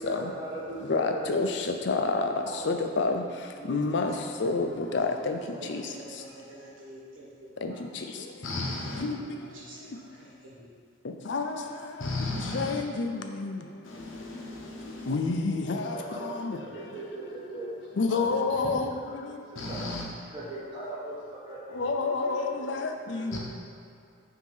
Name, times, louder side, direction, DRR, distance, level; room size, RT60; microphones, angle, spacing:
voice 1, 0.0-1.2 15.7-17.7 18.1-18.4 18.7-18.8 19.5-19.9 20.3-21.6 22.0-22.1 22.6-22.7 23.1-23.4, right 2 dB, 25° right, 1.1 m, -39 dB
voice 2, 0.9-2.3 2.6-3.2 3.7-4.1 4.4-5.4 5.7-5.8 7.6-7.7 9.0-9.2 11.3-11.5 12.5-13.6 15.1-16.6 18.0-19.3 21.7-23.4, left 3 dB, 70° left, 0.5 m, -28 dB
voice 3, 2.4-3.1 3.5-3.8 4.1-7.9 8.9-10.7, right 1 dB, 85° right, 1.5 m, -46 dB
voice 4, 8.4-9.0 12.0-12.8 13.8-15.2 19.5-20.0 23.3-23.4, left 2 dB, 90° left, 1.0 m, -34 dB
6.1 x 2.9 x 5.4 m
head